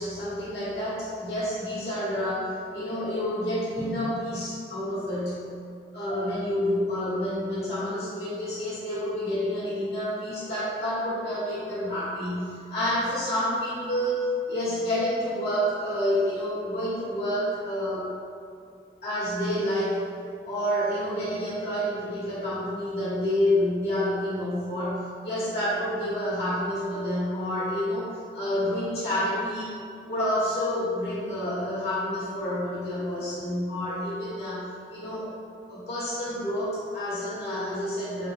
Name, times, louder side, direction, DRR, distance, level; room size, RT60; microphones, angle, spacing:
voice 1, 0.0-5.4 5.9-14.2 14.5-18.1 19.0-20.0 20.4-34.6 34.9-35.3 35.7-38.3, equal, 65° left, -12 dB, 1.3 m, -29 dB
4.2 x 2.1 x 3.3 m, 2.3 s
head